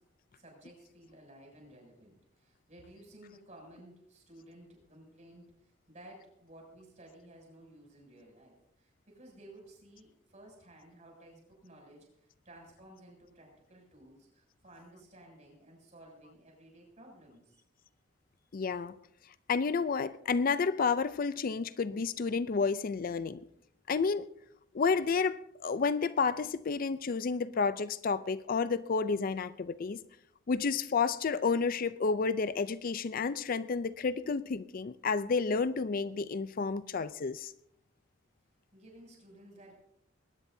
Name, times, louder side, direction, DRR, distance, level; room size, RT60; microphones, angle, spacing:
voice 1, 0.3-17.6 38.7-39.7, right 1 dB, 40° right, 7.1 m, -55 dB
voice 2, 18.5-18.9 19.5-23.4 23.9-24.3 24.7-30.0 30.5-37.5, left 5 dB, 50° left, 0.4 m, -30 dB
21.0 x 18.5 x 2.7 m
head